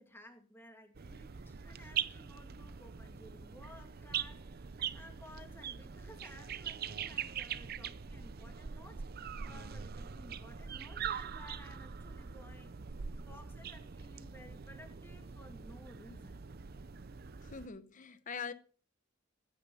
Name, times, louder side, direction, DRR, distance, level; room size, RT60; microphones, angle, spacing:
voice 1, 0.0-9.0 9.4-12.7 13.2-16.4, left 1 dB, 10° left, 2.4 m, -56 dB
sound 1, 0.9-17.7, right 7 dB, 50° right, 0.6 m, -43 dB
voice 2, 17.4-18.5, left 6 dB, 40° left, 0.8 m, -43 dB
15.5 x 9.1 x 5.6 m
head